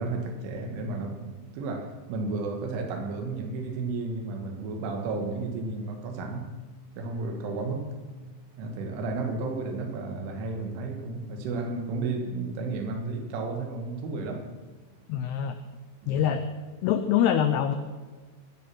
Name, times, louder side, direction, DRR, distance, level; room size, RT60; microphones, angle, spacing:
voice 1, 0.0-6.6 7.0-8.0 8.6-14.5 16.0-16.2, right 3 dB, 80° right, 4.2 m, -33 dB
voice 2, 15.1-15.6 16.1-16.4 16.8-17.8, left 9 dB, 90° left, 2.2 m, -24 dB
22.5 x 10.0 x 6.1 m
omnidirectional pair, 5.6 m